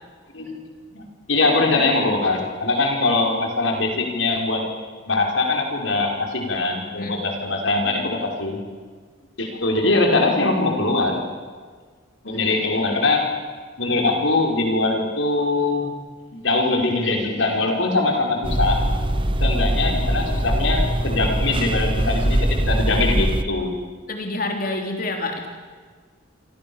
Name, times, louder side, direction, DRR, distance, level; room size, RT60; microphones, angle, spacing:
voice 1, 0.9-4.6 5.1-8.6 9.4-11.2 12.2-13.3 13.8-15.9 16.3-18.8 19.4-23.7, left 2 dB, 75° left, 1 dB, 5.6 m, -22 dB
voice 2, 7.0-7.3 12.4-12.5 24.1-25.5, left 2 dB, 45° left, 3 dB, 3.4 m, -28 dB
sound 1, 18.4-23.4, right 1 dB, 25° right, 1.1 m, -22 dB
28.0 x 26.0 x 7.3 m, 1.5 s
head